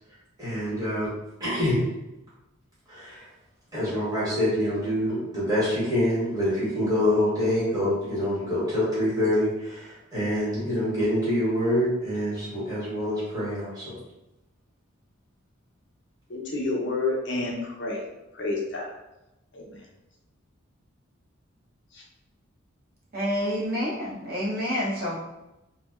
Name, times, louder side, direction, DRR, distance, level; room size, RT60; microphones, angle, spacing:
voice 1, 0.4-1.1 1.4-1.8 2.9-3.2 3.7-13.9, left 1 dB, 20° right, -10 dB, 1.0 m, -26 dB
voice 2, 16.3-18.0 18.3-18.9 19.5-19.8 21.9-22.0, left 2 dB, 60° left, -2 dB, 0.5 m, -29 dB
voice 3, 23.1-25.2, equal, 45° right, -5 dB, 0.7 m, -28 dB
2.5 x 2.1 x 2.3 m, 0.95 s
head